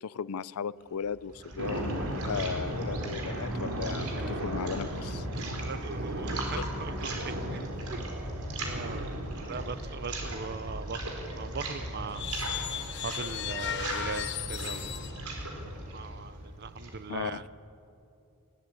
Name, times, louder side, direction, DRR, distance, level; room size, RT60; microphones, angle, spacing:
voice 1, 0.0-5.3 17.1-17.4, left 6 dB, 80° left, 19 dB, 0.5 m, -36 dB
sound 1, 1.0-17.1, right 1 dB, 80° right, 4.2 m, -38 dB
sound 2, 1.6-17.3, right 1 dB, 65° right, 2.8 m, -39 dB
voice 2, 5.3-7.7 7.9-8.2 8.6-12.2 13.0-14.8 15.9-17.4, right 5 dB, 50° right, 14 dB, 0.8 m, -40 dB
sound 3, 12.1-15.2, left 10 dB, 55° left, 0.9 m, -36 dB
20.5 x 18.0 x 8.5 m, 2.8 s
head